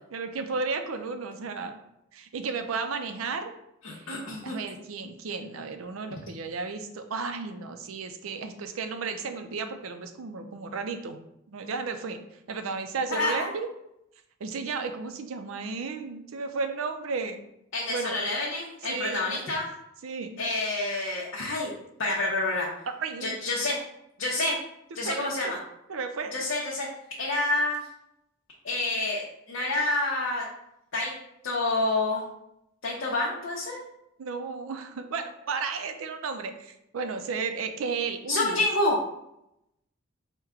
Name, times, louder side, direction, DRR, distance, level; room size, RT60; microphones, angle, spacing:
voice 1, 0.1-1.8 2.1-3.5 3.9-4.2 4.4-11.2 11.5-12.2 12.5-13.7 14.4-17.4 17.9-18.2 18.8-19.4 20.0-20.4 23.0-23.4 25.0-25.5 25.9-26.3 34.2-38.6, right 4 dB, 85° right, 7 dB, 0.5 m, -33 dB
voice 2, 3.8-4.6 13.1-13.5 17.7-19.6 20.4-21.7 22.0-22.7 23.2-23.8 24.2-24.5 24.9-25.6 26.3-26.9 27.2-27.9 28.6-30.4 30.9-31.1 31.4-32.2 32.8-33.8 38.3-39.0, left 2 dB, 65° left, -4 dB, 0.7 m, -28 dB
4.6 x 2.2 x 3.6 m, 0.82 s
head